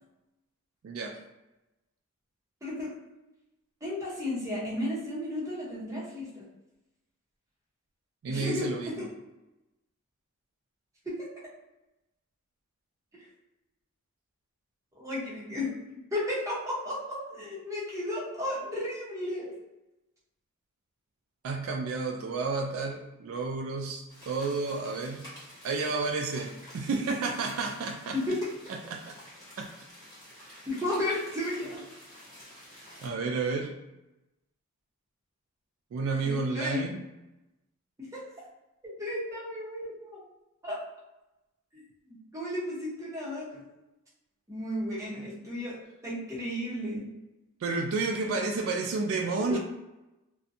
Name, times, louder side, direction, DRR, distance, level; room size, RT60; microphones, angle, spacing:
voice 1, 0.8-1.2 8.2-9.1 21.4-25.3 25.6-28.2 28.9-29.1 29.6-29.7 30.4-30.5 33.0-33.8 35.9-37.0 47.6-49.6, right 4 dB, 70° right, 2 dB, 0.3 m, -31 dB
voice 2, 2.6-2.9 3.8-6.5 8.3-9.1 11.1-11.3 15.0-19.6 28.1-28.4 30.7-31.8 36.2-36.9 38.0-38.2 38.8-40.2 40.6-40.8 41.7-43.6 44.5-45.8 46.0-47.1 48.2-48.3 49.5-49.6, left 1 dB, 15° right, -6 dB, 0.8 m, -34 dB
sound 1, 24.1-33.1, equal, 15° left, 1.2 m, -50 dB
2.6 x 2.2 x 2.6 m, 0.98 s
head